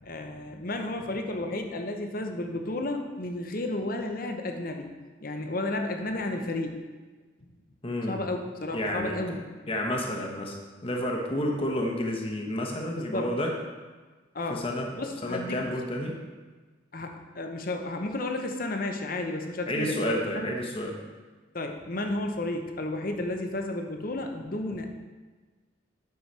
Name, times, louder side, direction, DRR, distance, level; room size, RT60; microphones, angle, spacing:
voice 1, 0.0-4.9 5.2-6.8 8.1-9.4 13.0-13.3 14.3-14.6 14.9-15.6 16.9-20.5 21.5-24.9, left 2 dB, 50° left, 4 dB, 0.9 m, -32 dB
voice 2, 7.8-8.2 8.7-9.2 9.7-10.6 10.8-13.5 14.5-14.9 15.2-16.2 19.7-21.0, left 1 dB, 30° left, 1 dB, 1.2 m, -30 dB
9.6 x 6.6 x 4.2 m, 1.4 s
head